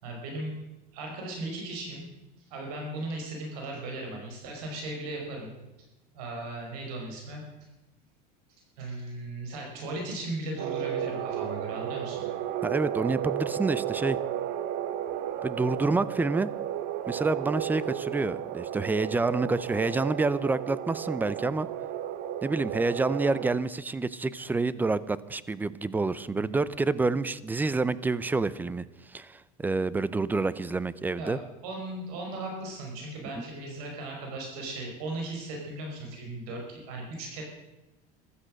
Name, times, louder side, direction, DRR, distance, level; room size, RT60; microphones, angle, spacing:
voice 1, 0.0-0.6 0.9-2.0 2.5-5.5 6.1-7.4 8.8-12.3 31.2-31.3 31.6-37.4, right 2 dB, 80° right, 1 dB, 5.2 m, -37 dB
sound 1, 10.6-23.5, right 11 dB, 55° right, 1.0 m, -33 dB
voice 2, 12.6-14.2 15.4-16.5 17.1-21.7 22.4-31.4 33.4-33.5, right 3 dB, 10° right, 18 dB, 0.5 m, -28 dB
15.0 x 12.5 x 6.5 m, 0.99 s
supercardioid pair, 135°, 19 cm